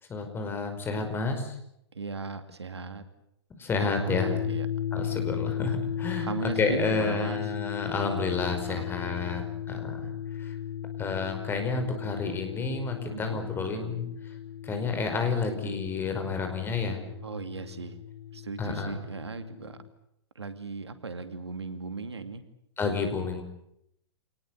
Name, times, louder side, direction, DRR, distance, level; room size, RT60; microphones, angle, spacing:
voice 1, 0.1-1.6 3.6-4.4 4.9-10.1 10.4-10.6 11.0-14.1 14.6-17.0 18.6-19.0 22.8-23.4, left 4 dB, 15° left, 6 dB, 5.2 m, -30 dB
voice 2, 1.9-3.0 4.2-4.7 6.2-7.4 8.7-9.5 13.1-13.4 17.2-18.0 18.3-19.8 20.3-22.4, right 4 dB, 75° right, 10 dB, 2.5 m, -37 dB
sound 1, 4.1-19.9, left 9 dB, 65° left, 5.2 m, -36 dB
27.5 x 19.5 x 8.3 m, 0.77 s
figure-of-eight pair, 110°, 14 cm